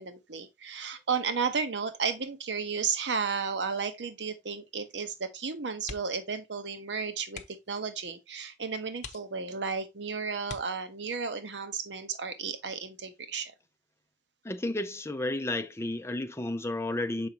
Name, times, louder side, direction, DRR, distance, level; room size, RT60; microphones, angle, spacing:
voice 1, 0.0-13.5, right 5 dB, 90° right, 0.9 m, -33 dB
sound 1, 5.8-6.3 6.6-6.8 7.3-7.8 8.4-8.5 9.0-9.7 10.4-11.2 12.8-13.1 13.5-13.6, left 4 dB, 45° left, 0.9 m, -45 dB
voice 2, 14.4-17.3, left 1 dB, 15° left, 0.6 m, -32 dB
7.0 x 5.1 x 2.8 m
head